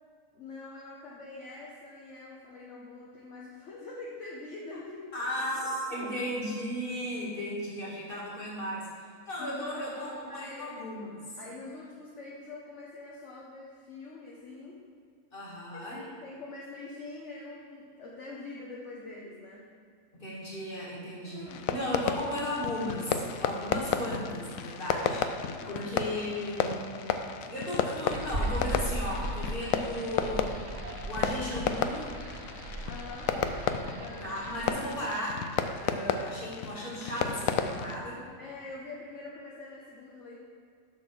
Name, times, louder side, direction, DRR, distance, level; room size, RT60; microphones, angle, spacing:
voice 1, 0.3-6.1 9.4-10.7 11.4-14.8 15.7-19.7 21.2-21.7 25.4-25.9 27.4-27.6 32.9-33.4 33.9-34.3 38.4-40.4, left 3 dB, 65° left, -4 dB, 1.3 m, -44 dB
voice 2, 5.1-8.9 9.3-11.2 15.3-16.0 20.1-25.2 25.7-30.5 31.1-32.1 34.2-35.4 35.8-38.3, left 1 dB, 40° left, -5 dB, 2.3 m, -35 dB
Fireworks, 21.5-38.0, left 7 dB, 85° left, 1.0 m, -33 dB
sound 1, 28.1-34.7, right 1 dB, 70° right, 1.6 m, -37 dB
7.1 x 6.2 x 6.3 m, 2.2 s
omnidirectional pair, 1.4 m